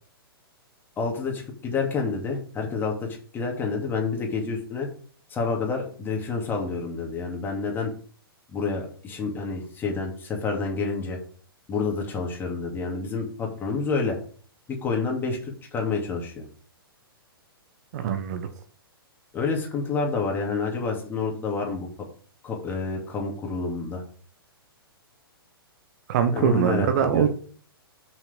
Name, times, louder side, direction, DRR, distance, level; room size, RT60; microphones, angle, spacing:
voice 1, 1.0-3.1 3.3-4.9 5.3-7.9 8.5-11.2 11.7-14.2 14.7-16.4 19.3-21.9 22.4-24.0 26.3-27.2, left 4 dB, 15° left, 2.5 m, -28 dB
voice 2, 17.9-18.5 26.1-27.3, right 8 dB, 45° right, 1.1 m, -23 dB
6.3 x 6.0 x 5.2 m
figure-of-eight pair, 115°, 13 cm